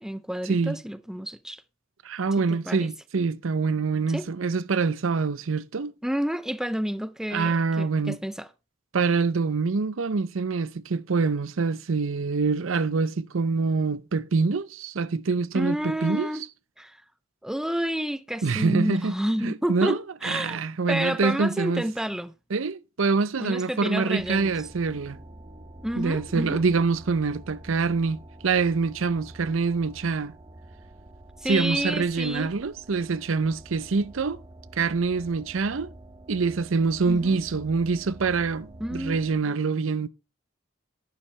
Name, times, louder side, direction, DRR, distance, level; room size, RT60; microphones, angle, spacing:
voice 1, 0.0-1.6 2.5-2.9 4.1-4.3 6.0-8.5 15.5-16.5 16.8-17.0 17.4-20.6 20.9-22.3 23.4-24.5 25.8-26.6 31.4-32.5 37.1-37.4 38.8-39.2, equal, 5° right, 0.5 m, -29 dB
voice 2, 2.0-5.9 7.3-8.2 8.9-16.3 18.4-19.1 19.4-21.8 22.5-25.2 26.0-30.3 31.4-34.4 34.7-35.9 36.3-40.1, right 4 dB, 70° right, 0.6 m, -25 dB
sound 1, 24.2-39.4, right 1 dB, 25° right, 1.0 m, -47 dB
11.0 x 10.0 x 3.2 m
head